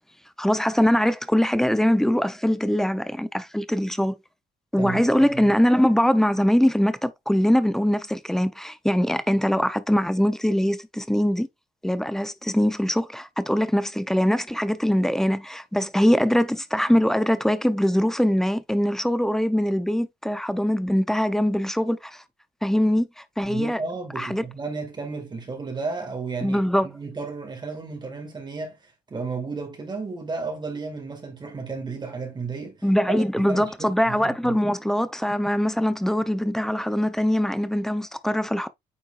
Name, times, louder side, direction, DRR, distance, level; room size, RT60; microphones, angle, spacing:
voice 1, 0.4-4.2 4.7-11.5 11.8-22.2 22.6-23.8 24.2-24.4 26.4-26.9 32.8-38.7, equal, ahead, 0.7 m, -22 dB
voice 2, 4.8-5.5 23.4-26.6 26.9-34.6, right 4 dB, 25° right, 2.0 m, -33 dB
8.8 x 4.6 x 2.4 m
cardioid pair, 110°, 17 cm